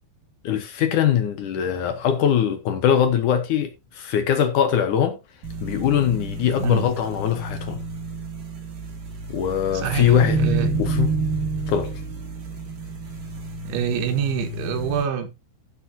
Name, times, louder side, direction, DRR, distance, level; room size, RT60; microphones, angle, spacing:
voice 1, 0.4-5.2 5.6-7.8 9.3-11.2 11.7-12.0, left 9 dB, 75° left, 1.9 m, -22 dB
sound 1, 5.4-15.0, right 2 dB, 45° right, 4.5 m, -29 dB
voice 2, 9.7-10.8 13.7-15.3, right 8 dB, 80° right, 4.0 m, -26 dB
14.5 x 7.3 x 2.8 m
omnidirectional pair, 5.4 m